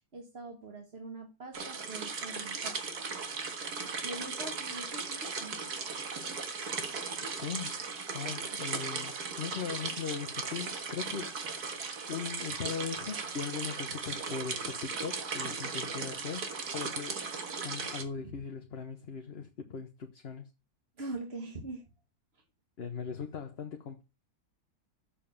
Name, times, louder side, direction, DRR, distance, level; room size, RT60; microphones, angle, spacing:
voice 1, 0.1-2.8 4.0-5.6 18.2-18.3 21.0-21.8, right 2 dB, 40° right, 1.6 m, -43 dB
sound 1, 1.5-18.0, right 4 dB, 65° right, 2.1 m, -37 dB
voice 2, 7.3-7.8 8.1-11.3 12.1-16.5 16.7-17.2 17.6-20.5 22.8-24.0, left 6 dB, 45° left, 1.1 m, -39 dB
7.3 x 7.1 x 7.1 m
omnidirectional pair, 1.8 m